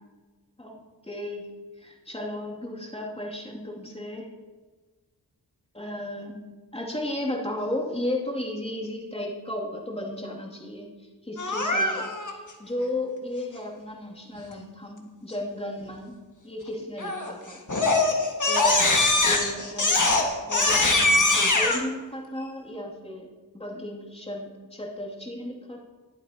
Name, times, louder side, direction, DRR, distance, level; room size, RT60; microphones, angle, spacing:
voice 1, 0.6-1.5 1.8-4.3 5.7-16.2 16.4-18.1 18.5-23.3 23.5-25.8, left 1 dB, 15° left, -2 dB, 2.4 m, -34 dB
Crying sobbing, 11.4-12.3 17.0-17.3 17.7-21.8, left 2 dB, 50° left, 1.7 m, -22 dB
21.0 x 8.1 x 2.8 m, 1.4 s
wide cardioid pair, 60°, 40 cm